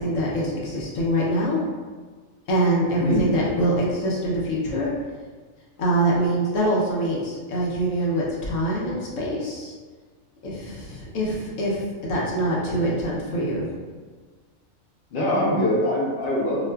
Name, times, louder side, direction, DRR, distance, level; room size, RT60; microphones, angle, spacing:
voice 1, 0.0-1.6 2.5-4.9 5.8-9.7 10.4-11.8 12.1-13.7, right 1 dB, 75° left, -4 dB, 1.0 m, -24 dB
voice 2, 3.0-3.3 15.1-16.7, left 1 dB, 50° left, -4 dB, 0.7 m, -23 dB
4.0 x 2.4 x 2.2 m, 1.5 s
omnidirectional pair, 1.4 m